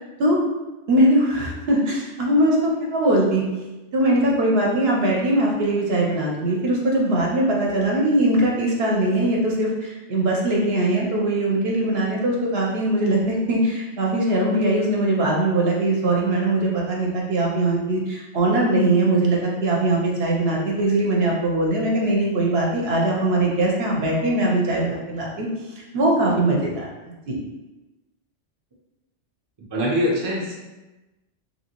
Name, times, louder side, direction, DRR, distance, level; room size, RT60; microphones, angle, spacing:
voice 1, 0.9-3.4 3.9-25.5 25.8-26.9 27.3-27.4, right 1 dB, 60° right, -2 dB, 0.8 m, -21 dB
voice 2, 29.7-30.5, equal, 35° right, -3 dB, 0.4 m, -23 dB
2.9 x 2.7 x 2.8 m, 1.1 s
omnidirectional pair, 1.3 m